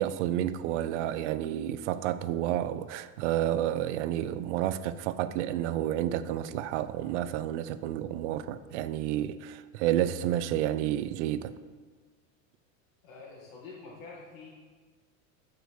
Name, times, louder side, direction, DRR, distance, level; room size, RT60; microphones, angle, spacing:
voice 1, 0.0-11.6, right 12 dB, 60° right, 0.5 m, -30 dB
voice 2, 13.0-14.5, left 4 dB, 80° left, 2.2 m, -46 dB
8.0 x 4.8 x 6.3 m
supercardioid pair, 165°, 40 cm